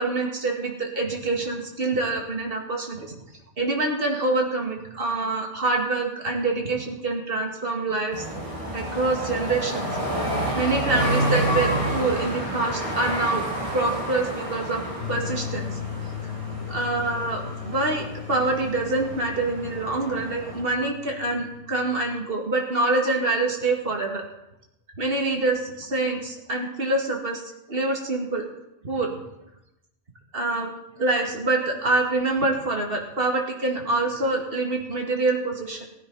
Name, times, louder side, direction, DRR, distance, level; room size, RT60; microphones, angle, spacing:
voice 1, 0.0-3.1 3.6-8.2 8.7-9.9 10.5-13.4 13.7-14.8 15.1-15.8 16.5-24.2 24.9-28.4 28.8-29.2 30.3-35.8, right 2 dB, 60° right, 1 dB, 2.5 m, -26 dB
sound 1, 8.1-20.6, right 1 dB, 30° right, 2.6 m, -29 dB
sound 2, 15.0-22.2, left 10 dB, 75° left, 1.2 m, -37 dB
15.5 x 10.5 x 5.6 m, 0.89 s
omnidirectional pair, 1.1 m